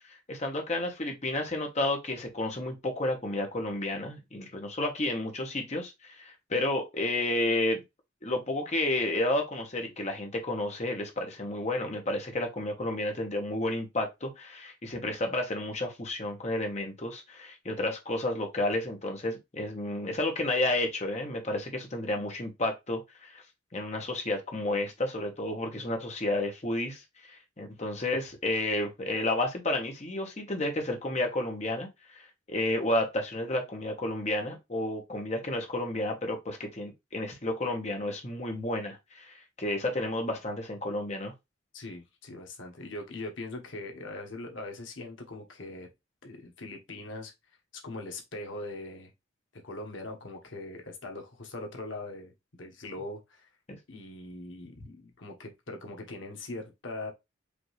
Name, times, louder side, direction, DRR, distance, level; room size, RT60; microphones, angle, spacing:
voice 1, 0.0-7.8 8.2-23.4 23.7-41.3 53.7-53.8, left 1 dB, 35° left, 1.1 m, -31 dB
voice 2, 41.7-45.9 46.2-47.3 47.8-49.1 49.6-53.5 53.9-57.1, left 2 dB, 80° left, 1.2 m, -41 dB
5.1 x 2.7 x 3.1 m
head